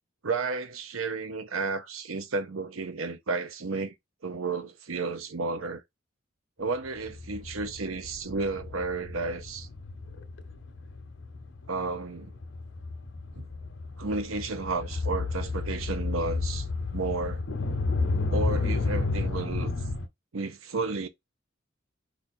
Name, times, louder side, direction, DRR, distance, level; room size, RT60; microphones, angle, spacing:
voice 1, 0.2-3.9 4.2-5.8 6.6-9.7 11.7-12.3 13.3-13.5 14.0-16.7 16.9-17.4 18.3-19.7 20.3-21.1, right 3 dB, 90° right, 0.7 m, -32 dB
sound 1, 6.9-20.1, left 3 dB, 70° left, 0.8 m, -32 dB
5.1 x 2.4 x 4.3 m
head